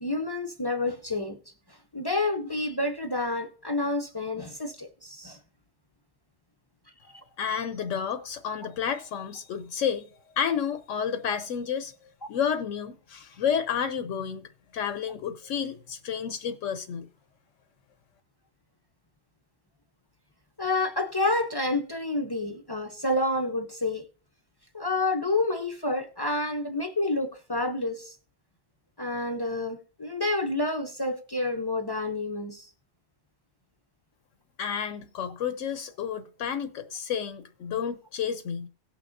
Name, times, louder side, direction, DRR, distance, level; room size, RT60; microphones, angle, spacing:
voice 1, 0.0-1.4 1.7-5.4 20.6-24.0 24.7-28.2 29.0-32.7, left 2 dB, 35° left, 0.4 m, -29 dB
voice 2, 7.0-10.1 10.4-11.9 12.3-17.1 34.6-38.7, left 7 dB, 75° left, 0.9 m, -31 dB
17.5 x 5.9 x 2.6 m
omnidirectional pair, 1.3 m